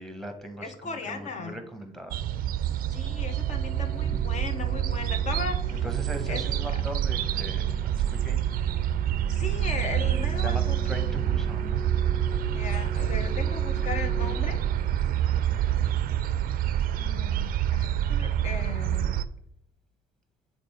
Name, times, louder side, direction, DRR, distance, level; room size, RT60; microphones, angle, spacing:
voice 1, 0.0-2.2 4.0-4.2 5.7-8.4 10.4-11.8 14.9-16.0, right 1 dB, ahead, 6 dB, 1.0 m, -40 dB
voice 2, 0.6-1.6 2.9-5.8 6.3-6.4 9.3-10.8 12.5-14.6 16.9-19.2, left 4 dB, 45° left, 7 dB, 0.8 m, -37 dB
sound 1, 2.1-19.3, right 11 dB, 60° right, 0.4 m, -27 dB
sound 2, 2.9-15.6, left 3 dB, 20° left, 0.4 m, -43 dB
5.3 x 4.2 x 4.4 m, 0.72 s
cardioid pair, 110°, 17 cm